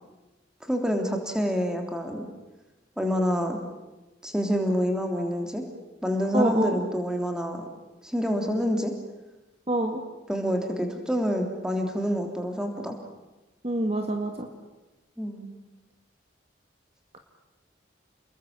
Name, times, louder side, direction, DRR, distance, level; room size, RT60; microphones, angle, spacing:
voice 1, 0.7-2.2 3.0-3.6 4.2-5.6 6.0-7.6 8.0-8.9 10.3-13.0 15.2-15.5, equal, 5° right, 3 dB, 3.2 m, -27 dB
voice 2, 6.3-6.8 9.7-10.0 13.6-14.5, right 1 dB, 30° right, 4 dB, 1.9 m, -26 dB
29.5 x 21.0 x 7.6 m, 1.1 s
head